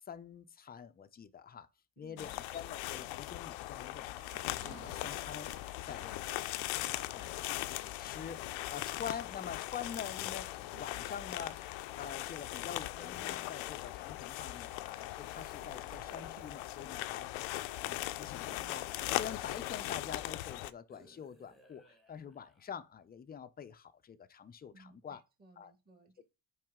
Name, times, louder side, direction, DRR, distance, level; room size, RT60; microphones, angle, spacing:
voice 1, 0.0-1.7 2.0-6.6 6.9-8.4 8.7-11.6 11.9-17.3 17.8-25.2 25.6-25.7 26.2-26.3, left 7 dB, 20° left, 0.5 m, -46 dB
voice 2, 2.0-2.3 24.7-26.2, right 2 dB, 20° right, 1.6 m, -61 dB
sound 1, 2.2-20.7, left 17 dB, 75° left, 0.6 m, -39 dB
sound 2, 4.2-19.6, right 9 dB, 55° right, 0.9 m, -62 dB
sound 3, 5.9-7.4 8.1-9.1 10.0-12.2 12.8-14.6 15.7-17.5 18.3-20.0 20.9-22.8, equal, ahead, 1.1 m, -62 dB
7.6 x 4.9 x 3.6 m
cardioid pair, 125°, 46 cm